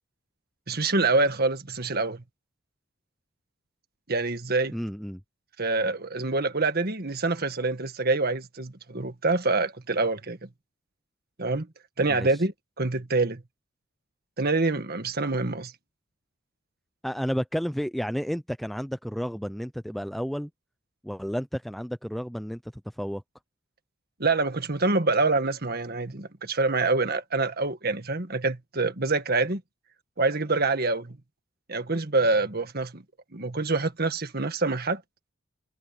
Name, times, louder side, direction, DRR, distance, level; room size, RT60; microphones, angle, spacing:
voice 1, 0.7-2.2 4.1-4.8 5.6-10.5 11.4-11.7 12.0-12.5 12.8-13.4 14.4-15.7 24.2-29.6 30.2-31.2 31.7-33.0 33.3-35.0, right 3 dB, 45° right, 1.7 m, -26 dB
voice 2, 4.7-5.2 12.1-12.3 17.0-20.5 21.0-23.2, equal, ahead, 0.4 m, -31 dB
head